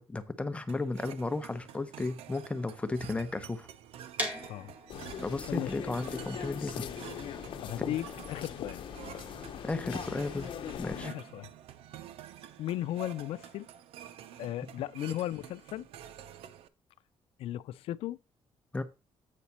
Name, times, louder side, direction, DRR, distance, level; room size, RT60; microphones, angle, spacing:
voice 1, 0.0-3.7 5.2-6.9 7.8-7.9 9.6-10.5 10.8-11.1 18.7-18.8, left 3 dB, 10° left, 0.8 m, -34 dB
sound 1, 0.7-16.7, right 10 dB, 80° right, 0.6 m, -49 dB
sound 2, 4.2-10.0, equal, 15° right, 2.2 m, -42 dB
sound 3, 4.9-11.1, left 8 dB, 60° left, 1.0 m, -40 dB
voice 2, 7.6-8.8 11.0-11.5 12.6-13.7 14.4-15.9 17.4-18.2, left 13 dB, 75° left, 0.4 m, -36 dB
8.4 x 5.0 x 4.3 m
cardioid pair, 135°, 10 cm